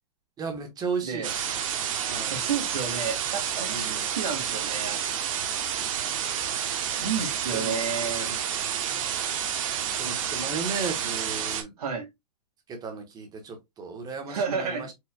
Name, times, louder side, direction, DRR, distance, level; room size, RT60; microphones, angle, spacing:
voice 1, 0.4-1.4 2.1-2.3 3.7-4.0 7.5-7.7 8.2-8.4 10.0-11.7 12.7-14.9, right 4 dB, 20° right, 1.3 m, -35 dB
sound 1, 1.2-11.6, right 9 dB, 55° right, 1.0 m, -30 dB
voice 2, 2.3-5.0 7.0-8.3 11.8-12.1 14.3-14.9, right 6 dB, 70° right, 1.7 m, -31 dB
4.7 x 3.2 x 2.2 m
hypercardioid pair, 140°, 20 cm